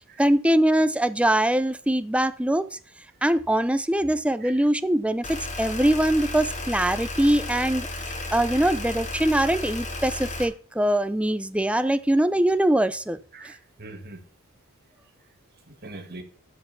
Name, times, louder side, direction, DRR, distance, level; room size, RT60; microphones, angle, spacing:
voice 1, 0.2-2.8 3.2-7.9 8.3-13.2, right 1 dB, 5° right, 13 dB, 0.6 m, -22 dB
sound 1, 5.2-10.4, left 2 dB, 35° left, 2.5 m, -33 dB
voice 2, 13.3-14.2 15.7-16.2, right 3 dB, 45° right, 4 dB, 2.4 m, -42 dB
13.0 x 5.6 x 7.0 m, 0.41 s
head